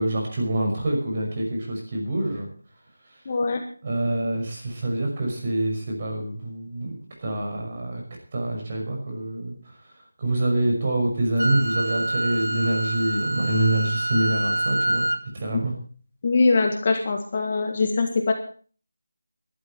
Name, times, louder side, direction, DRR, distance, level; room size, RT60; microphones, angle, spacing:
voice 1, 0.0-2.5 3.8-6.9 7.2-8.0 8.3-9.6 10.2-15.1 15.3-15.7, right 1 dB, 30° right, 0 dB, 5.8 m, -26 dB
voice 2, 3.2-3.6 15.5-15.6 16.2-18.3, left 3 dB, 30° left, 4 dB, 1.8 m, -22 dB
Wind instrument woodwind instrument, 11.4-15.2, right 2 dB, 90° right, 1.7 m, -26 dB
19.0 x 12.5 x 4.4 m, 0.41 s
figure-of-eight pair, 175°, 0 cm